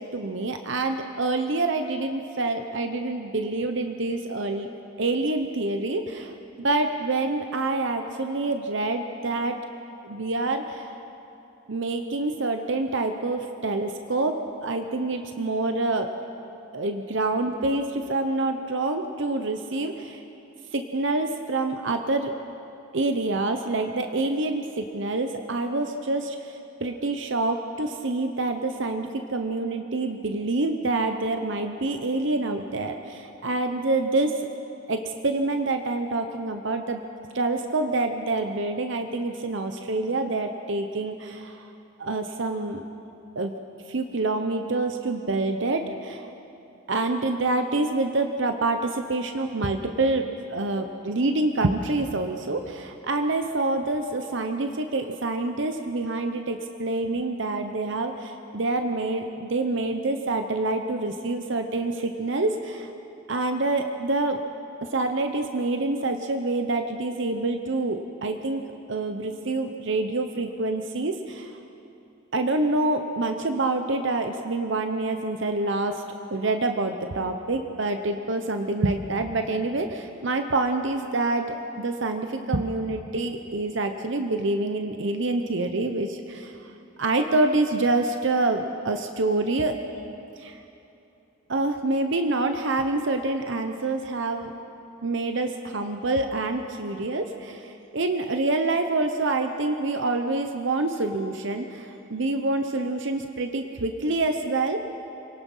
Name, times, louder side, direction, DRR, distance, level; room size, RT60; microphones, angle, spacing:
voice 1, 0.0-4.7 5.0-9.6 10.0-10.9 11.7-16.1 16.7-20.2 20.7-22.3 22.9-34.4 34.9-37.0 37.3-41.7 42.0-42.8 43.4-43.6 43.9-46.3 46.9-50.2 50.5-62.9 63.3-64.4 64.9-68.6 68.9-71.5 72.3-76.0 76.3-86.7 87.0-89.8 90.4-90.6 91.5-94.5 95.0-104.8, right 2 dB, 60° right, 6 dB, 0.9 m, -27 dB
27.5 x 18.5 x 5.6 m, 2.8 s
head